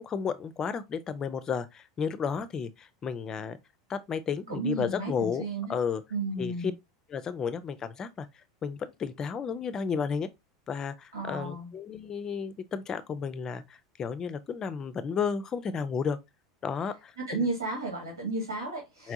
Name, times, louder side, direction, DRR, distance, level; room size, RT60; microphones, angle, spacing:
voice 1, 0.0-3.6 3.9-6.0 6.4-6.5 7.1-8.3 8.6-10.3 10.7-16.2 16.6-17.5 19.0-19.1, left 6 dB, 25° left, 0.6 m, -33 dB
voice 2, 4.5-5.7 6.1-6.7 11.1-11.7 17.3-19.1, right 2 dB, 80° right, 1.8 m, -33 dB
4.6 x 3.4 x 2.8 m
figure-of-eight pair, 80°, 2 cm